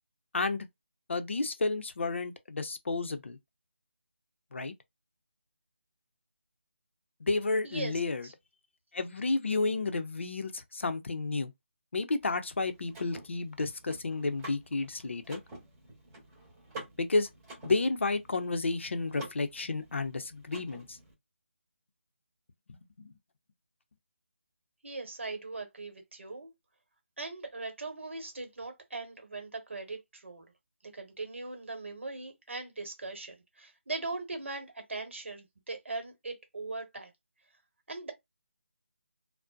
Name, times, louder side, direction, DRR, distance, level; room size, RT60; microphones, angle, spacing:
voice 1, 0.3-0.7 1.1-3.4 4.5-4.7 7.2-8.3 8.9-11.5 11.9-15.4 17.0-17.3 17.6-21.0 22.7-23.1, left 3 dB, 65° left, 0.5 m, -31 dB
Car / Mechanisms, 12.2-21.1, right 2 dB, 15° right, 0.9 m, -50 dB
voice 2, 24.8-26.5 27.2-30.4 30.9-37.1 37.9-38.1, right 3 dB, 65° right, 1.1 m, -40 dB
2.6 x 2.1 x 2.3 m
figure-of-eight pair, 160°, 7 cm